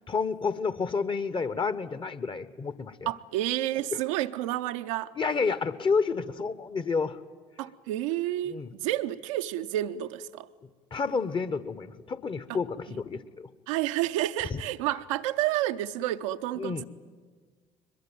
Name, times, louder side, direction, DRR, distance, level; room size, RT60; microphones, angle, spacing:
voice 1, 0.1-3.1 3.9-4.0 5.1-7.2 8.5-8.7 10.9-13.5 14.5-14.6 16.6-16.8, left 5 dB, 30° left, 15 dB, 1.1 m, -30 dB
voice 2, 3.1-5.1 7.6-10.5 13.7-16.8, right 14 dB, 65° right, 9 dB, 0.6 m, -30 dB
22.0 x 21.5 x 9.2 m, 1.5 s
figure-of-eight pair, 55°, 17 cm